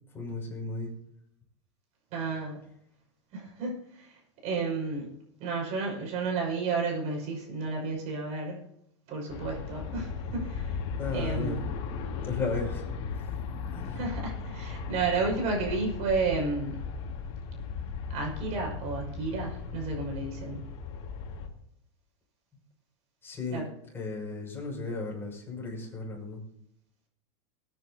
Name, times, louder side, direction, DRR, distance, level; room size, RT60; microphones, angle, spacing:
voice 1, 0.1-1.0 11.0-11.6 12.2-12.8 13.1-13.4 13.7-14.0 23.2-23.7 23.9-26.4, left 3 dB, 15° left, -2 dB, 6.2 m, -35 dB
voice 2, 2.1-2.6 3.3-5.1 5.4-8.6 9.1-10.8 11.1-11.6 13.9-16.8 18.1-20.6 23.5-23.6, right 4 dB, 50° right, 0 dB, 6.1 m, -32 dB
Aircraft, 9.3-21.5, left 5 dB, 50° left, 2.3 m, -36 dB
22.0 x 9.8 x 2.8 m, 0.76 s
hypercardioid pair, 120°, 15 cm